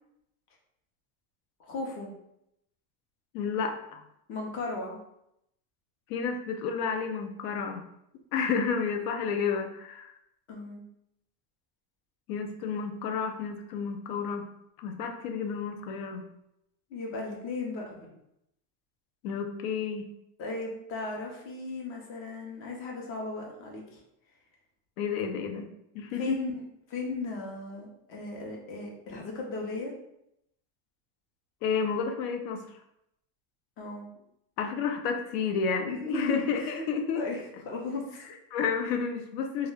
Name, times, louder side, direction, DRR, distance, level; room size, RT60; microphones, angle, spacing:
voice 1, 1.6-2.1 4.3-5.0 10.5-10.8 16.9-18.1 20.4-24.0 26.2-26.5 26.9-29.9 33.8-34.1 35.9-36.7 37.1-38.3, left 3 dB, 30° left, -1 dB, 0.4 m, -36 dB
voice 2, 3.3-4.0 6.1-7.8 8.3-10.1 12.3-14.5 14.8-16.2 19.2-20.1 25.0-25.7 25.9-26.4 31.6-32.6 34.6-37.2 38.5-39.7, left 6 dB, 75° left, 5 dB, 0.6 m, -31 dB
2.3 x 2.0 x 3.2 m, 0.79 s
cardioid pair, 165°, 46 cm